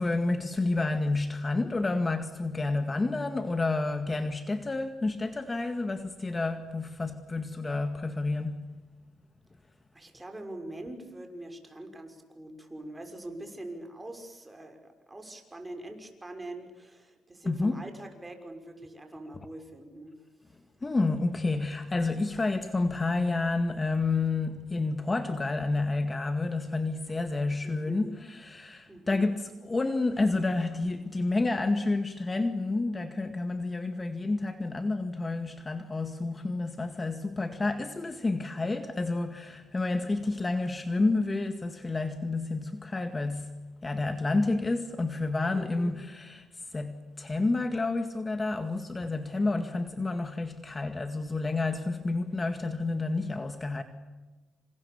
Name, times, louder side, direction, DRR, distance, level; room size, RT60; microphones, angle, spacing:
voice 1, 0.0-8.7 17.5-17.8 20.8-53.8, left 3 dB, 25° left, 2.0 m, -30 dB
voice 2, 9.9-20.2 20.5-20.6 27.6-28.1 28.9-29.3 45.5-45.9, right 1 dB, 15° right, 6.0 m, -43 dB
28.0 x 28.0 x 7.2 m
cardioid pair, 90°, 0 cm